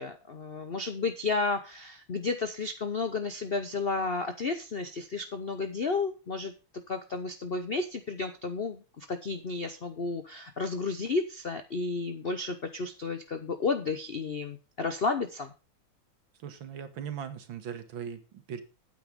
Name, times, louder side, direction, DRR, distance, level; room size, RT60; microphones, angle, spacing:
voice 1, 0.0-6.5 6.9-15.5, left 4 dB, 80° left, 9 dB, 0.5 m, -32 dB
voice 2, 16.4-18.6, right 8 dB, 65° right, 10 dB, 2.1 m, -39 dB
9.2 x 8.4 x 5.1 m, 0.32 s
omnidirectional pair, 2.3 m